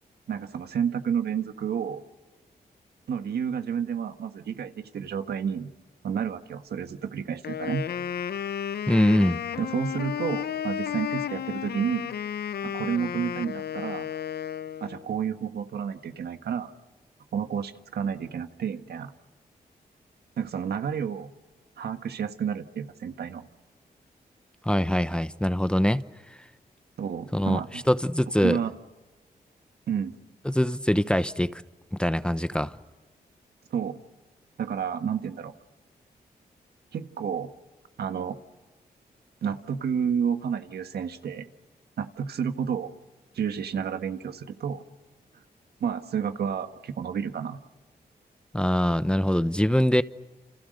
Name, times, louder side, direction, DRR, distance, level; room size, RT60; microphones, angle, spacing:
voice 1, 0.3-2.0 3.1-5.7 6.0-7.8 9.6-12.1 12.6-14.1 14.8-16.7 17.3-19.1 20.4-21.3 21.8-23.5 27.0-27.8 28.4-28.7 29.9-30.1 33.7-34.0 34.6-35.5 36.9-37.5 38.0-38.4 39.4-41.5 42.0-42.9 43.3-44.8 45.8-47.6, right 7 dB, 80° right, 1.6 m, -30 dB
Wind instrument woodwind instrument, 7.4-15.0, left 9 dB, 75° left, 0.8 m, -33 dB
voice 2, 8.9-9.4 24.6-26.0 27.3-28.6 30.5-31.6 32.0-32.7 48.5-50.0, equal, 5° left, 0.9 m, -23 dB
29.0 x 27.5 x 6.6 m
cardioid pair, 65°, 16 cm